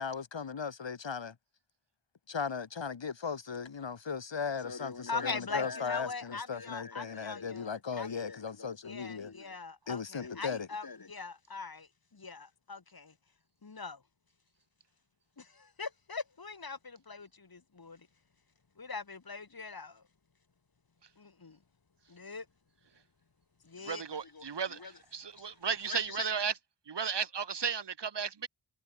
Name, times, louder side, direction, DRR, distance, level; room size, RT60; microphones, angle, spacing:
voice 1, 0.0-1.3 2.3-9.3 9.9-10.7, left 6 dB, 75° left, 2.0 m, -37 dB
voice 2, 4.6-13.1 13.6-14.0 15.4-18.1 18.8-20.0 21.2-21.6 22.1-22.5 23.6-24.9 25.4-25.6 25.9-26.3, left 4 dB, 50° left, 2.6 m, -42 dB
voice 3, 23.8-26.5 26.9-28.5, right 6 dB, 65° right, 1.2 m, -34 dB
wide cardioid pair, 75°, 44 cm